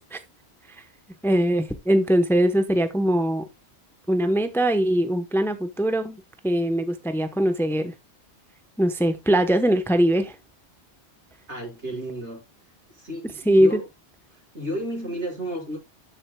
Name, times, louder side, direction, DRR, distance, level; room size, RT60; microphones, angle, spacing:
voice 1, 1.2-3.5 4.1-7.9 8.8-10.4 13.5-13.8, right 1 dB, ahead, 0.8 m, -21 dB
voice 2, 11.5-12.4 12.9-13.9 14.3-15.8, equal, 85° right, 5.9 m, -32 dB
12.5 x 7.8 x 2.2 m
omnidirectional pair, 1.1 m